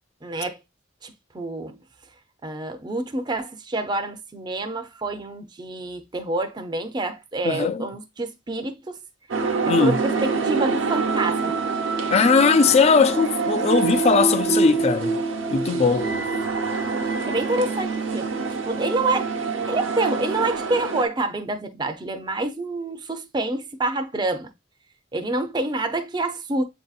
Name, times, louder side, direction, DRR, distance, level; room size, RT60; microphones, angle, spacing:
voice 1, 0.2-0.6 1.0-1.8 2.4-9.0 9.8-11.6 15.9-16.2 17.2-18.3 18.6-19.3 19.7-24.5 25.1-26.6, right 2 dB, 20° right, 0.5 m, -27 dB
voice 2, 7.4-7.9 9.7-10.0 12.1-15.2 15.5-16.1, left 5 dB, 30° left, 0.3 m, -19 dB
sound 1, 9.3-21.1, right 4 dB, 70° right, 0.7 m, -25 dB
7.6 x 2.7 x 2.4 m
head